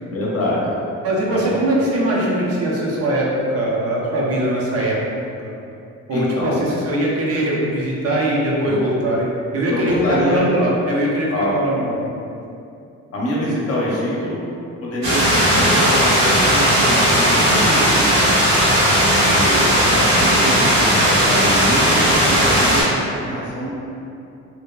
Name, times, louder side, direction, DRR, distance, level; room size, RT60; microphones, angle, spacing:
voice 1, 0.1-0.8 1.3-1.6 6.1-6.6 8.6-8.8 9.7-10.7 11.3-11.6 13.1-14.5 14.8-18.1 18.8-22.9 23.1-23.7, equal, 50° left, -5 dB, 0.7 m, -24 dB
voice 2, 1.0-5.0 5.4-5.5 6.1-9.3 9.5-11.9, right 1 dB, 50° right, -4 dB, 0.6 m, -21 dB
sound 1, 15.0-22.8, equal, 70° right, 1.2 m, -16 dB
2.7 x 2.1 x 2.2 m, 2.6 s
cardioid pair, 90°, 30 cm